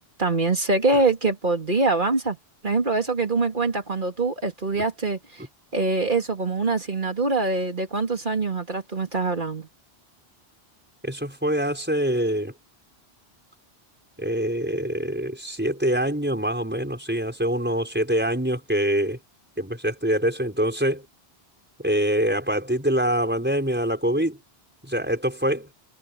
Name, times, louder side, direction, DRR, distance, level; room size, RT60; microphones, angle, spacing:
voice 1, 0.0-2.4 2.6-5.4 5.7-9.7, right 3 dB, 50° right, 2.6 m, -24 dB
voice 2, 11.0-12.5 14.2-19.2 19.6-21.0 21.8-24.4 24.8-25.7, equal, 10° right, 5.9 m, -24 dB
omnidirectional pair, 1.1 m